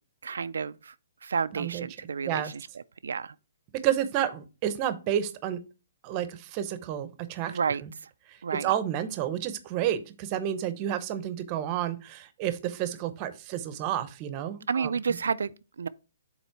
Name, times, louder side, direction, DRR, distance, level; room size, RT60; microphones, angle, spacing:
voice 1, 0.2-0.9 1.2-2.6 3.0-3.3 7.5-8.1 8.4-8.7 14.7-15.9, right 6 dB, 90° right, 0.3 m, -31 dB
voice 2, 3.8-5.6 6.0-7.9 8.3-14.9, right 11 dB, 25° right, 0.7 m, -30 dB
7.0 x 4.1 x 4.5 m
hypercardioid pair, 165°, 0 cm